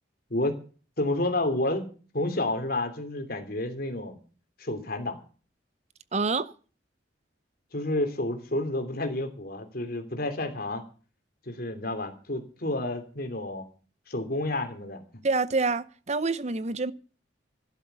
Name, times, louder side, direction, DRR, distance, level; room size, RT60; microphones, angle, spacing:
voice 1, 1.0-1.9 2.1-4.2 4.6-5.2 7.7-10.8 11.5-13.6 14.1-15.0, left 1 dB, 50° left, 3.0 m, -30 dB
voice 2, 6.1-6.5 15.2-16.9, right 3 dB, 35° right, 0.7 m, -27 dB
12.0 x 11.5 x 6.8 m
head